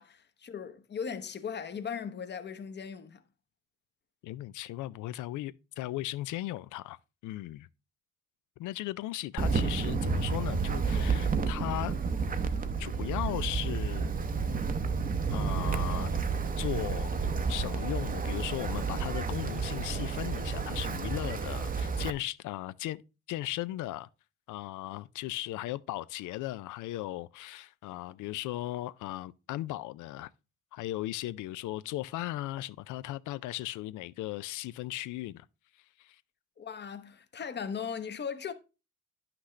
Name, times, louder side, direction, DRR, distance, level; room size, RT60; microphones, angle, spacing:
voice 1, 0.0-3.2 36.6-38.5, left 7 dB, 35° left, 0.9 m, -38 dB
voice 2, 4.2-7.7 8.6-12.0 12.8-14.1 15.3-16.3 16.6-17.1 17.5-23.0 23.3-24.1 24.5-30.3 30.7-35.5 36.0-36.2, left 15 dB, 80° left, 0.5 m, -37 dB
Wind, 9.4-22.1, right 5 dB, 30° right, 0.7 m, -31 dB
9.9 x 6.0 x 3.2 m
cardioid pair, 90°, 30 cm